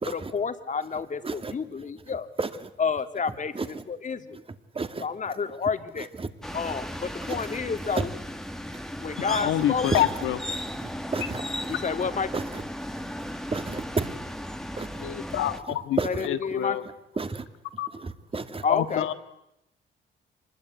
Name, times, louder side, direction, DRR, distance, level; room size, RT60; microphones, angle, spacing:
voice 1, 0.0-2.3 2.8-4.4 5.0-6.1 6.5-8.2 9.0-9.9 11.7-12.5 16.0-16.8 18.6-19.1, left 5 dB, 40° left, 8 dB, 2.1 m, -30 dB
sound 1, 6.4-15.6, equal, ahead, 1.6 m, -36 dB
voice 2, 9.2-10.4 15.0-16.8 17.8-17.9 18.7-19.1, left 12 dB, 85° left, 11 dB, 1.7 m, -27 dB
voice 3, 13.5-14.1 14.8-14.9 16.0-16.1 17.2-17.4 18.0-18.6, right 4 dB, 30° right, 10 dB, 2.1 m, -29 dB
26.0 x 21.0 x 9.5 m, 0.88 s
cardioid pair, 90°, 20 cm